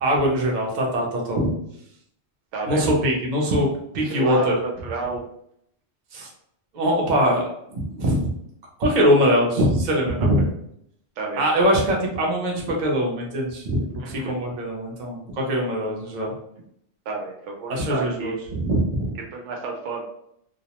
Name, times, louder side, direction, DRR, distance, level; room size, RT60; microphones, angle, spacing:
voice 1, 0.0-1.5 2.7-3.7 3.9-4.5 6.1-6.3 6.7-8.3 8.8-10.4 11.4-16.3 17.7-19.1, equal, 45° right, -1 dB, 0.7 m, -22 dB
voice 2, 2.5-2.8 4.0-5.2 10.2-10.5 11.2-11.7 14.0-14.3 17.1-18.4 19.3-20.0, right 3 dB, 90° right, -1 dB, 0.9 m, -31 dB
2.3 x 2.0 x 2.8 m, 0.72 s
omnidirectional pair, 1.2 m